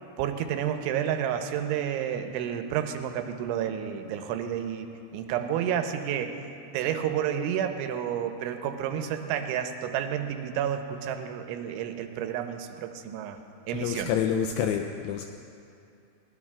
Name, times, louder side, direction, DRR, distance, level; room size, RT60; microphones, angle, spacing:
voice 1, 0.2-4.9 5.1-6.3 6.7-13.4 13.7-14.1, right 9 dB, 90° right, 6 dB, 3.1 m, -30 dB
voice 2, 13.7-15.3, left 8 dB, 85° left, 5 dB, 2.4 m, -28 dB
20.5 x 19.5 x 2.3 m, 2.6 s
omnidirectional pair, 5.3 m